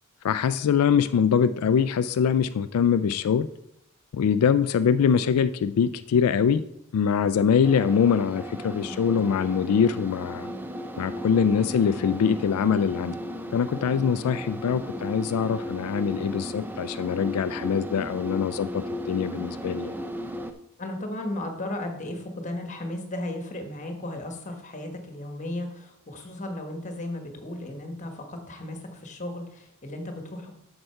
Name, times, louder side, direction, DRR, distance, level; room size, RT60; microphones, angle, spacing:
voice 1, 0.2-3.5 4.1-6.6 6.9-10.5 11.0-13.2 13.5-20.0, left 7 dB, 90° left, 12 dB, 0.3 m, -23 dB
sound 1, 7.6-20.5, equal, 10° right, 0.5 m, -35 dB
voice 2, 20.8-30.5, left 1 dB, 35° left, 5 dB, 1.3 m, -35 dB
7.9 x 6.6 x 4.5 m, 0.79 s
head